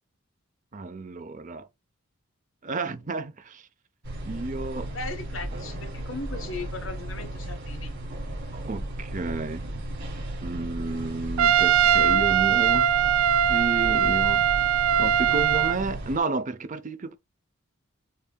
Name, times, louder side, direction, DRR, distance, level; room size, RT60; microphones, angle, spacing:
voice 1, 0.7-1.7 2.6-3.7 4.2-4.9 8.5-9.7 10.4-12.9 13.5-14.5 15.0-17.2, right 3 dB, 35° right, 0.6 m, -31 dB
sound 1, 4.0-16.2, right 1 dB, 60° right, 2.7 m, -35 dB
voice 2, 4.9-7.9, left 3 dB, 60° left, 1.1 m, -37 dB
Trumpet, 11.4-15.8, right 10 dB, 75° right, 0.3 m, -21 dB
7.2 x 2.7 x 2.2 m
head